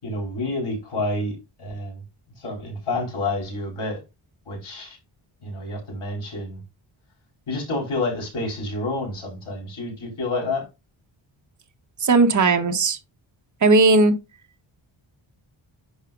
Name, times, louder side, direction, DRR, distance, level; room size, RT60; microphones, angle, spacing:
voice 1, 0.0-2.0 2.4-4.0 4.5-5.0 5.4-6.6 7.5-10.7, left 2 dB, 90° left, 4.3 m, -29 dB
voice 2, 12.0-13.0 13.6-14.1, right 3 dB, 35° right, 1.1 m, -17 dB
11.0 x 4.9 x 2.5 m
wide cardioid pair, 130°, 48 cm